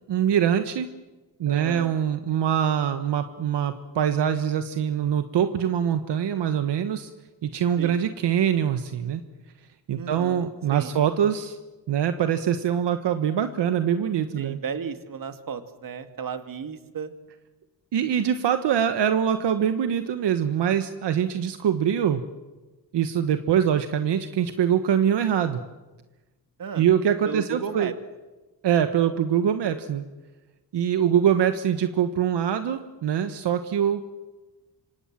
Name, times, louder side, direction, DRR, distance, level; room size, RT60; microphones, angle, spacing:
voice 1, 0.1-0.9 1.4-7.1 7.4-9.2 9.9-11.6 11.9-14.6 17.9-22.2 22.9-25.6 26.7-27.9 28.6-30.0 30.7-34.0, right 9 dB, 75° right, 9 dB, 1.4 m, -23 dB
voice 2, 1.5-1.9 7.8-8.0 10.0-10.9 14.4-17.1 26.6-26.8 27.3-27.9, right 6 dB, 50° right, 8 dB, 2.2 m, -34 dB
27.0 x 26.0 x 7.5 m, 1.2 s
cardioid pair, 130°, 42 cm